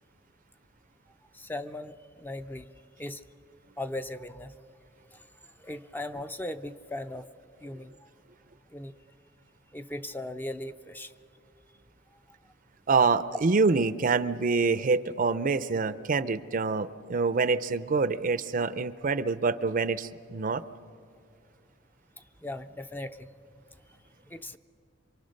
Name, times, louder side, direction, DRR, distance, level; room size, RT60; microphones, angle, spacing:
voice 1, 1.3-2.7 3.0-3.2 3.8-4.5 5.1-5.2 5.6-7.3 7.6-8.1 8.7-8.9 9.7-11.1 22.4-23.3 24.3-24.6, left 1 dB, 10° left, 9 dB, 0.5 m, -38 dB
voice 2, 12.9-20.6, right 4 dB, 45° right, 15 dB, 0.6 m, -26 dB
27.0 x 24.5 x 6.6 m, 2.4 s
head